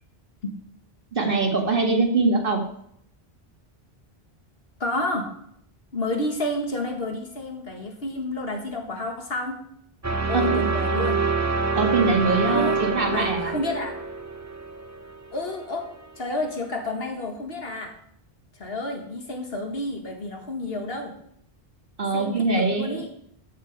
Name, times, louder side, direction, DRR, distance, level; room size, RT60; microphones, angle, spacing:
voice 1, 1.1-2.6 10.3-10.6 11.8-13.5 22.0-23.0, right 3 dB, 60° right, 2 dB, 2.0 m, -23 dB
voice 2, 4.8-5.3 5.9-9.6 10.3-11.2 12.5-12.8 13.1-14.0 15.3-15.9 16.2-17.9 18.6-21.1 22.1-23.1, left 1 dB, 70° left, 3 dB, 2.0 m, -30 dB
sound 1, 10.0-16.0, right 4 dB, 20° right, 0.7 m, -26 dB
14.0 x 6.5 x 5.4 m, 0.71 s
omnidirectional pair, 1.1 m